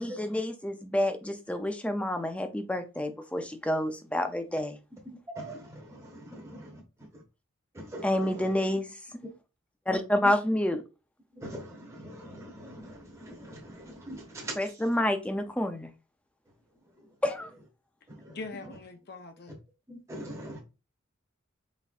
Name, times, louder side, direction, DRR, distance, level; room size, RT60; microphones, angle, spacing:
voice 1, 0.0-4.7 8.0-8.9 9.9-10.8 14.6-15.9 17.2-17.5, left 1 dB, 5° left, 0.5 m, -28 dB
voice 2, 5.3-7.2 7.7-8.8 9.2-9.4 10.6-10.8 11.3-14.8 16.7-17.2 18.1-18.8 19.5-19.6 19.9-20.6, right 1 dB, 15° right, 1.0 m, -43 dB
voice 3, 18.3-19.6, left 3 dB, 50° left, 0.6 m, -42 dB
4.1 x 3.9 x 2.4 m
head